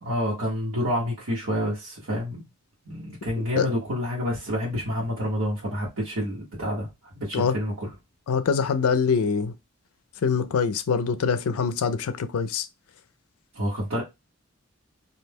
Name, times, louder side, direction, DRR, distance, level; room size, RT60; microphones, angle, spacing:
voice 1, 0.0-2.4 2.8-7.9 13.5-14.0, equal, 85° right, 1.1 m, -28 dB
voice 2, 8.3-9.5 10.2-12.7, left 6 dB, 90° left, 0.4 m, -24 dB
2.6 x 2.2 x 3.3 m
head